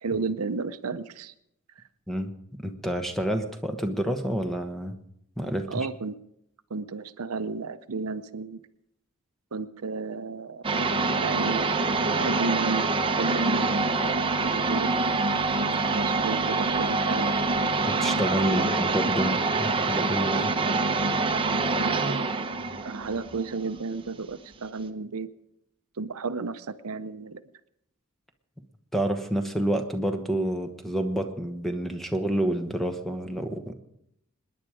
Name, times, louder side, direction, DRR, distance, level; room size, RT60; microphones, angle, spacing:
voice 1, 0.0-1.3 1.8-1.9 5.7-6.2 6.7-8.6 9.5-11.7 12.1-14.9 15.7-17.4 18.5-18.7 21.8-22.4 22.8-25.3 26.0-27.4, right 4 dB, 75° right, 12 dB, 0.7 m, -33 dB
voice 2, 2.6-4.9 5.4-5.9 17.9-20.5 28.9-33.7, right 1 dB, ahead, 7 dB, 1.1 m, -28 dB
sound 1, 10.6-24.1, right 3 dB, 25° right, 0.9 m, -26 dB
26.5 x 10.5 x 4.9 m, 0.77 s
head